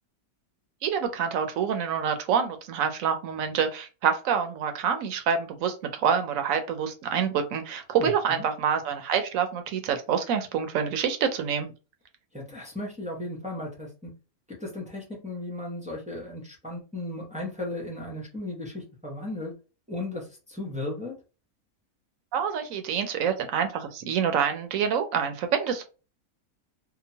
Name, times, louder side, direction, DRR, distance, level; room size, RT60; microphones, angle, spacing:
voice 1, 0.8-11.7 22.3-25.8, right 7 dB, 70° right, 7 dB, 0.9 m, -27 dB
voice 2, 8.0-8.4 12.3-14.1 14.6-19.5 19.9-21.2, left 2 dB, 10° right, -2 dB, 0.4 m, -36 dB
2.9 x 2.1 x 2.7 m, 0.33 s
omnidirectional pair, 1.5 m